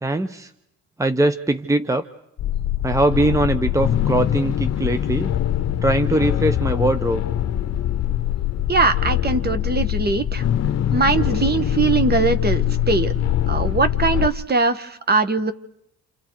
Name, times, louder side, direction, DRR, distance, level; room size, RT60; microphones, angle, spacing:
voice 1, 0.0-0.5 1.0-2.0 2.8-5.3 5.8-7.2, right 1 dB, 10° right, 10 dB, 0.9 m, -21 dB
sound 1, 2.4-14.3, left 11 dB, 55° left, 1.0 m, -23 dB
voice 2, 8.7-10.4 10.9-13.1 13.5-15.5, right 4 dB, 35° right, 10 dB, 1.5 m, -21 dB
29.0 x 28.5 x 4.8 m, 0.77 s
cardioid pair, 90°, 30 cm